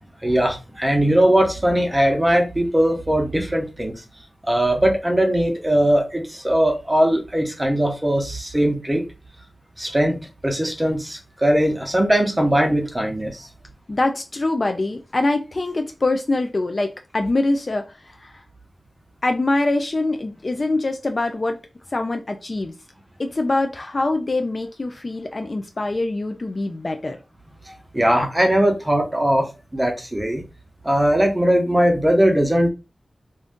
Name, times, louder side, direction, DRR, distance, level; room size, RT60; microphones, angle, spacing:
voice 1, 0.2-3.9 4.5-9.0 9.8-13.5 27.9-30.4 30.8-32.7, right 1 dB, 15° right, 0.8 m, -20 dB
voice 2, 13.9-18.4 19.2-21.6 21.9-22.7 23.2-27.2, left 2 dB, 45° left, 0.4 m, -24 dB
2.5 x 2.4 x 3.5 m
wide cardioid pair, 70°, 0 cm